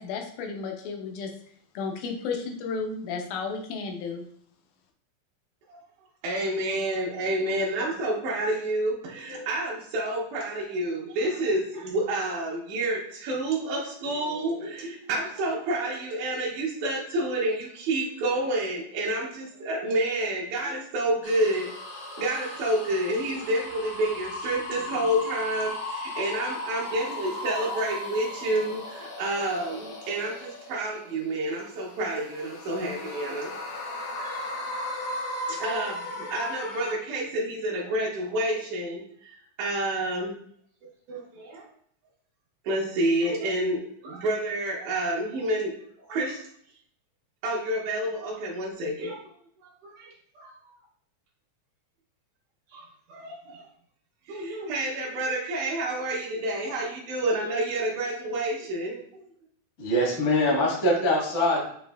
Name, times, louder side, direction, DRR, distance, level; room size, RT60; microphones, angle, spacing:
voice 1, 0.0-4.3, left 4 dB, 85° left, 2 dB, 2.2 m, -33 dB
voice 2, 6.2-21.7 22.1-33.6 34.2-34.7 35.5-40.4 41.1-41.7 42.6-46.4 47.4-49.2 49.8-50.6 52.7-53.6 54.3-59.2, right 1 dB, 80° right, -3 dB, 2.1 m, -29 dB
sound 1, 21.2-31.1 31.7-36.9, left 2 dB, 70° left, 1.4 m, -36 dB
voice 3, 59.8-61.7, left 1 dB, 55° left, -3 dB, 0.8 m, -23 dB
6.7 x 2.5 x 2.2 m, 0.64 s
omnidirectional pair, 3.4 m